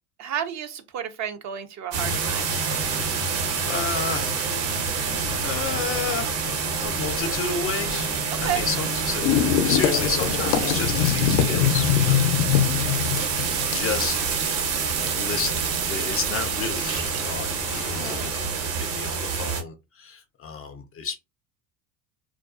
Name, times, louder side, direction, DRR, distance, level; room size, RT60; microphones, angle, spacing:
voice 1, 0.2-2.5 8.3-8.7 17.9-18.3, right 9 dB, 40° right, 0.4 m, -31 dB
sound 1, 1.9-19.6, right 5 dB, 65° right, 1.1 m, -27 dB
voice 2, 3.0-3.4 3.6-4.3 5.4-12.2 13.7-14.2 15.1-21.1, left 5 dB, 30° left, 0.4 m, -31 dB
sound 2, 5.1-18.3, left 10 dB, 75° left, 0.6 m, -27 dB
Water tap faucet, 10.3-18.7, right 8 dB, 85° right, 0.7 m, -36 dB
2.4 x 2.2 x 2.4 m
hypercardioid pair, 80°, 48 cm